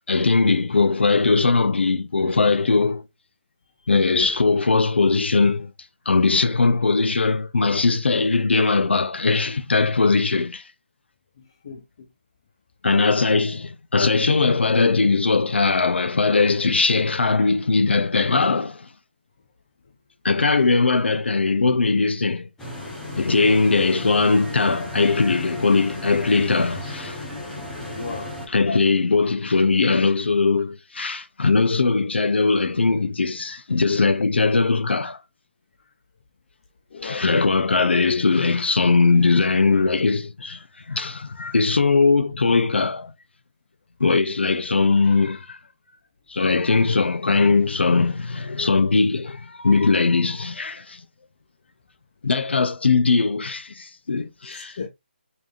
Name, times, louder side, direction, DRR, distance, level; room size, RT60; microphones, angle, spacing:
voice 1, 0.1-3.0 3.9-5.7 6.1-10.6 12.8-18.9 20.2-22.5 23.2-27.2 28.5-35.2 37.0-40.6 40.9-43.1 44.0-45.6 46.3-51.0 52.2-54.8, left 4 dB, 70° left, 0.7 m, -20 dB
voice 2, 11.6-12.1 20.5-20.8 27.9-28.3 36.9-37.3 54.4-54.9, left 4 dB, 25° left, 0.5 m, -36 dB
sound 1, 22.6-28.5, left 1 dB, 5° left, 0.9 m, -35 dB
5.1 x 3.4 x 2.4 m
hypercardioid pair, 175°, 6 cm